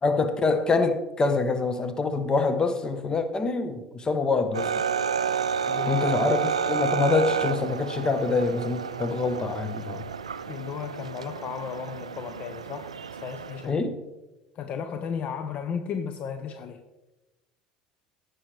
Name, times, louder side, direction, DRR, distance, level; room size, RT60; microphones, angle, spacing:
voice 1, 0.0-4.8 5.9-10.0 13.6-14.0, left 3 dB, 25° left, 9 dB, 1.1 m, -25 dB
sound 1, 4.5-13.7, right 7 dB, 80° right, 0.4 m, -30 dB
voice 2, 5.7-6.4 10.5-12.9 13.2-13.8 14.6-16.8, left 7 dB, 40° left, 8 dB, 0.7 m, -34 dB
16.0 x 6.2 x 3.3 m, 1.0 s
figure-of-eight pair, 65°, 3 cm